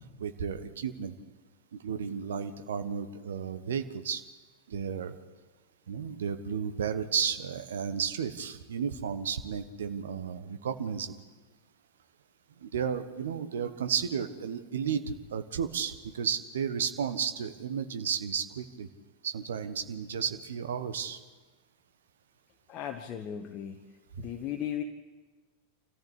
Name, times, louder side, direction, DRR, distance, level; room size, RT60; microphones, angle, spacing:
voice 1, 0.2-1.1 1.7-4.2 4.7-5.1 5.9-11.1 12.6-18.9 19.2-21.2 24.2-24.3, right 7 dB, 65° right, 10 dB, 1.4 m, -33 dB
voice 2, 22.7-24.8, left 10 dB, 35° left, 5 dB, 1.3 m, -37 dB
26.0 x 14.5 x 8.4 m, 1.3 s
figure-of-eight pair, 90°, 0 cm